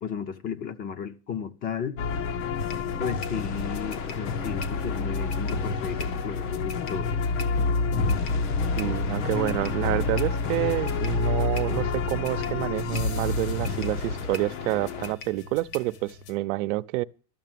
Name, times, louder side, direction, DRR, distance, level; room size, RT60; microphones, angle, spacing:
voice 1, 0.0-2.0 3.0-7.2, left 7 dB, 25° left, 0.6 m, -34 dB
sound 1, 2.0-15.1, left 4 dB, 85° left, 1.9 m, -28 dB
sound 2, 2.6-16.3, left 5 dB, 65° left, 1.8 m, -41 dB
voice 2, 8.8-17.0, right 18 dB, 85° right, 0.7 m, -28 dB
13.0 x 6.8 x 9.2 m
cardioid pair, 175°, 36 cm